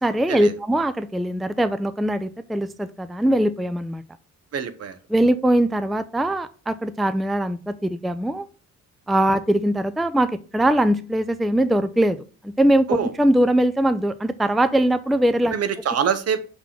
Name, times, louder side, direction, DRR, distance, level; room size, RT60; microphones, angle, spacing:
voice 1, 0.0-4.0 5.1-8.5 9.1-15.5, right 1 dB, ahead, 12 dB, 0.4 m, -21 dB
voice 2, 4.5-5.0 12.9-13.1 15.5-16.4, right 7 dB, 55° right, 12 dB, 1.0 m, -24 dB
6.0 x 3.9 x 5.9 m, 0.36 s
cardioid pair, 90°, 30 cm